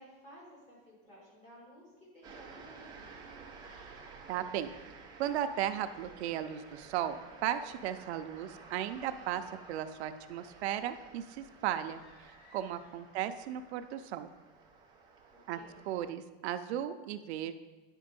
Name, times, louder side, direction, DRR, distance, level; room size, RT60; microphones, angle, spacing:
voice 1, 0.0-3.4 15.5-15.8, equal, 20° left, -5 dB, 2.8 m, -56 dB
sound 1, 2.2-16.1, right 4 dB, 15° right, 0.7 m, -53 dB
voice 2, 4.3-4.7 5.2-7.2 7.4-14.3 15.5-15.6 15.9-17.5, right 11 dB, 80° right, 9 dB, 0.6 m, -36 dB
sound 2, 11.7-13.4, left 2 dB, 75° left, 1.6 m, -63 dB
10.5 x 4.5 x 5.2 m, 1.2 s
supercardioid pair, 175°, 32 cm